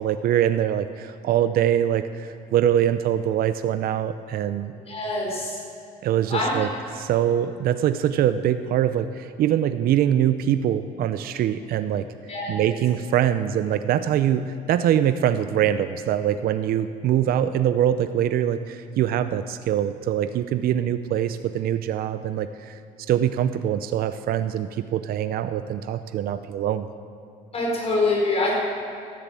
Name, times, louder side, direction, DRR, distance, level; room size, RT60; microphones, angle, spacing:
voice 1, 0.0-4.7 6.0-6.7 6.9-12.1 12.5-22.8 23.1-26.9, right 10 dB, 60° right, 11 dB, 0.6 m, -23 dB
voice 2, 4.9-5.6 6.3-6.5 12.3-12.6 27.5-28.5, left 2 dB, 35° left, -2 dB, 4.5 m, -24 dB
13.5 x 10.5 x 7.5 m, 2.6 s
cardioid pair, 110°, 17 cm